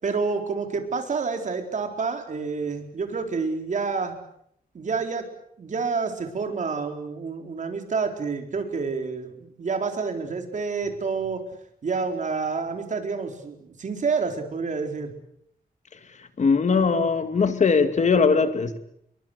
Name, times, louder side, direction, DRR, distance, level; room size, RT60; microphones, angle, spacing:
voice 1, 0.0-4.2 4.7-5.3 5.6-11.4 11.8-15.1, right 4 dB, 55° right, 5 dB, 4.2 m, -28 dB
voice 2, 15.9-18.8, left 5 dB, 50° left, 10 dB, 2.3 m, -21 dB
27.5 x 22.5 x 8.0 m, 0.72 s
wide cardioid pair, 135°, 15 cm